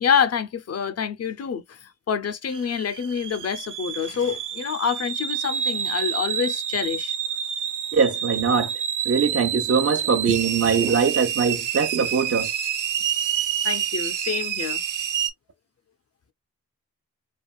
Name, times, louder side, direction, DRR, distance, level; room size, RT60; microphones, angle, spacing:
voice 1, 0.0-7.1 13.6-14.8, left 7 dB, 55° left, 0.5 m, -27 dB
sound 1, 2.5-15.3, right 8 dB, 90° right, 0.6 m, -28 dB
voice 2, 7.9-8.7 9.1-12.5, right 6 dB, 50° right, 0.8 m, -22 dB
3.4 x 2.3 x 2.2 m
cardioid pair, 65°, 30 cm